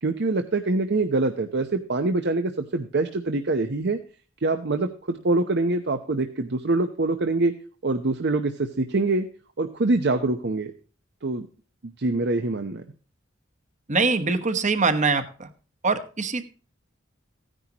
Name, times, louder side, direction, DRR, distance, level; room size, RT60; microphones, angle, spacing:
voice 1, 0.0-4.0 4.4-7.5 7.8-9.3 9.6-10.7 11.2-11.5 12.0-12.8, right 2 dB, 60° right, 7 dB, 0.8 m, -24 dB
voice 2, 13.9-15.5 15.8-16.4, right 4 dB, 40° right, 10 dB, 1.2 m, -23 dB
15.5 x 10.0 x 2.9 m, 0.37 s
head